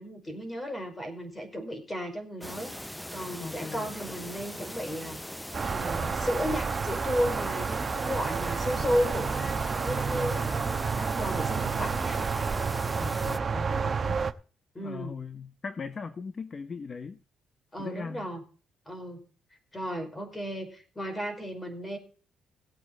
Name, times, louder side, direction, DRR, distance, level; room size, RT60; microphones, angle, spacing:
voice 1, 0.0-5.2 5.7-12.2 14.7-15.1 17.7-18.4 18.8-19.2 19.7-22.0, equal, 20° left, 5.0 m, -34 dB
sound 1, 2.4-13.4, left 1 dB, 5° left, 0.6 m, -40 dB
voice 2, 3.4-3.9 13.0-14.2 14.8-17.2 17.8-18.3, left 5 dB, 40° left, 0.9 m, -39 dB
sound 2, 5.5-14.3, right 5 dB, 40° right, 1.0 m, -30 dB
17.0 x 8.7 x 4.0 m
cardioid pair, 90°, 0 cm